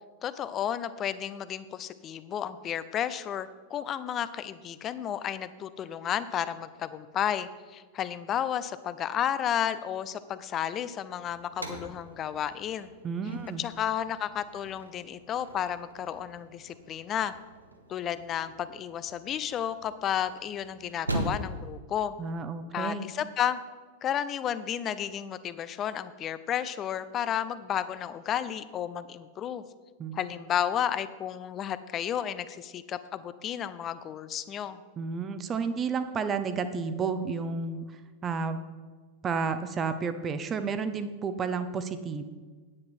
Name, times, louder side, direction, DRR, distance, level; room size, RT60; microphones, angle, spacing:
voice 1, 0.2-12.9 13.6-17.3 17.9-22.2 22.7-23.6 24.0-29.6 30.1-34.8, left 9 dB, 30° left, 14 dB, 0.5 m, -32 dB
sound 1, 11.2-21.8, right 1 dB, 80° right, 1.1 m, -41 dB
voice 2, 13.0-13.6 22.2-23.1 30.0-30.2 35.0-37.9 38.2-38.6 39.2-42.2, right 5 dB, 25° right, 11 dB, 0.8 m, -31 dB
9.8 x 9.4 x 4.4 m, 1.5 s
figure-of-eight pair, 90°, 0 cm